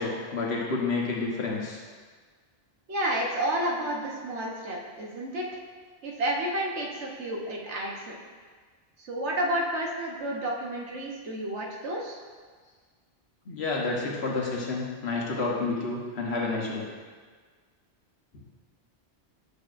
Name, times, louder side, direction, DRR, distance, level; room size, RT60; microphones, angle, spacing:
voice 1, 0.0-1.8 13.4-16.9, left 3 dB, 65° left, -3 dB, 1.4 m, -29 dB
voice 2, 2.9-5.5 6.0-8.2 9.0-12.2 15.3-15.9, right 1 dB, 80° right, -2 dB, 1.3 m, -31 dB
7.6 x 6.8 x 2.5 m, 1.5 s
omnidirectional pair, 1.1 m